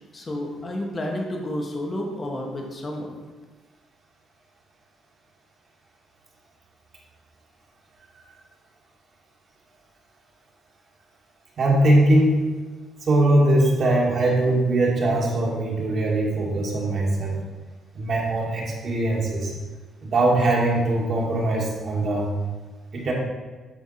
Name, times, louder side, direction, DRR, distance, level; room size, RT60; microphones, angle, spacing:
voice 1, 0.1-3.1, left 1 dB, 30° left, 1 dB, 1.3 m, -30 dB
voice 2, 11.6-12.4 13.0-17.4 18.0-19.5 20.0-22.3 22.9-23.1, right 1 dB, 55° right, -3 dB, 1.8 m, -21 dB
9.2 x 3.5 x 4.2 m, 1.3 s
cardioid pair, 90°, 0 cm